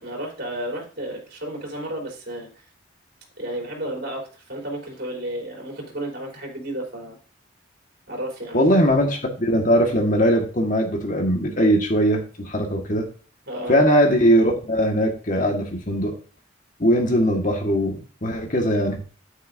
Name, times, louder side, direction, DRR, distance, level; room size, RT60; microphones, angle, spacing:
voice 1, 0.0-2.6 3.4-7.2 8.1-8.6 13.5-13.7, right 1 dB, 50° right, -1 dB, 3.8 m, -32 dB
voice 2, 8.5-13.1 13.7-16.1 16.8-19.0, equal, 40° left, 2 dB, 1.7 m, -20 dB
9.3 x 8.8 x 2.7 m, 0.38 s
head